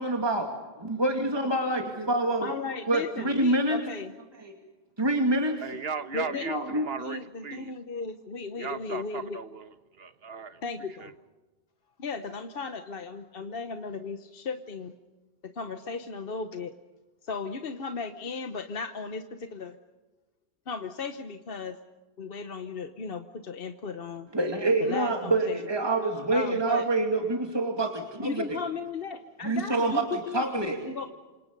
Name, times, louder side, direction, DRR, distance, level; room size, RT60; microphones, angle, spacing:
voice 1, 0.0-2.5 2.9-3.8 4.4-4.5 5.0-5.6 6.2-6.9 24.3-28.6 29.4-30.8, right 2 dB, 25° right, 2.4 m, -27 dB
voice 2, 2.4-4.1 6.1-6.5 7.0-9.4 10.6-11.1 12.0-14.9 15.5-16.8 17.2-19.8 20.7-21.8 22.2-24.3 24.8-25.6 26.3-26.9 28.2-31.2, left 4 dB, 65° left, 1.2 m, -36 dB
voice 3, 5.6-7.7 8.6-10.6 11.0-11.1, right 5 dB, 70° right, 1.4 m, -37 dB
28.0 x 26.0 x 5.4 m
omnidirectional pair, 1.0 m